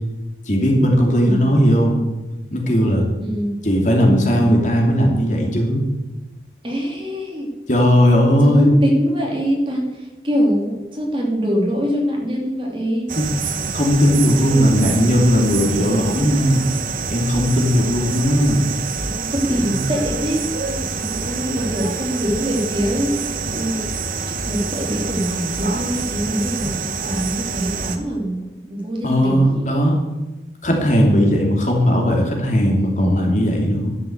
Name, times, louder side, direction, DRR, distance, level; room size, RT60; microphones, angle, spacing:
voice 1, 0.5-2.0 2.5-3.1 3.6-5.8 7.7-8.7 13.2-13.3 13.7-16.6 17.1-18.7 19.6-19.8 29.0-30.0 30.6-33.9, equal, 45° left, 0 dB, 2.7 m, -17 dB
voice 2, 1.2-1.5 3.2-3.6 6.6-7.5 8.4-13.1 14.0-15.2 15.7-16.2 19.0-23.9 24.3-29.7, equal, 30° right, 0 dB, 2.6 m, -24 dB
sound 1, 13.1-28.0, right 4 dB, 50° right, 1.2 m, -26 dB
11.5 x 7.8 x 8.0 m, 1.1 s
head